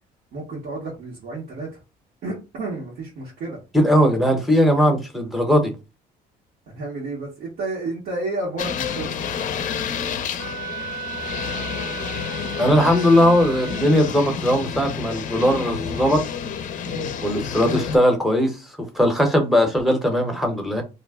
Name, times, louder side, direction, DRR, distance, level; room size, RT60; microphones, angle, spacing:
voice 1, 0.3-1.8 2.2-3.6 6.7-9.2 16.8-17.1, right 2 dB, 70° right, 1.1 m, -31 dB
voice 2, 3.7-5.7 12.6-16.2 17.2-18.6 18.9-20.8, equal, ahead, 0.8 m, -19 dB
sound 1, 8.6-18.0, left 7 dB, 50° left, 0.5 m, -30 dB
Wind instrument woodwind instrument, 10.4-14.2, right 5 dB, 85° right, 0.5 m, -35 dB
2.4 x 2.1 x 3.5 m
cardioid pair, 110°, 17 cm